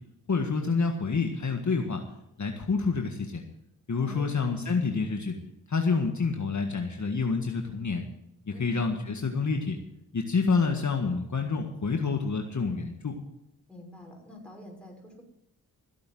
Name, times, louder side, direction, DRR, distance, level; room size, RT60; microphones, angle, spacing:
voice 1, 0.3-2.0 2.4-3.4 3.9-5.3 5.7-8.0 8.6-9.8 10.1-13.2, left 4 dB, 50° left, 3 dB, 1.7 m, -28 dB
voice 2, 4.0-4.3 8.5-8.8 13.7-15.2, left 1 dB, 5° left, 0 dB, 6.0 m, -46 dB
15.5 x 8.6 x 7.8 m, 0.82 s
cardioid pair, 50°, 37 cm